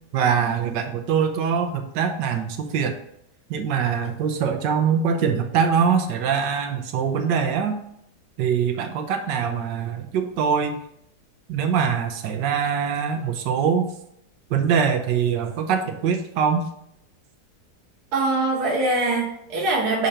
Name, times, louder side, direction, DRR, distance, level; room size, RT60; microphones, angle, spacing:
voice 1, 0.1-2.9 3.5-7.8 8.4-10.8 11.5-13.9 14.5-16.7, right 7 dB, 80° right, 6 dB, 1.4 m, -23 dB
voice 2, 18.1-20.1, right 2 dB, 60° right, -3 dB, 1.7 m, -23 dB
6.8 x 2.9 x 4.9 m, 0.74 s
omnidirectional pair, 1.9 m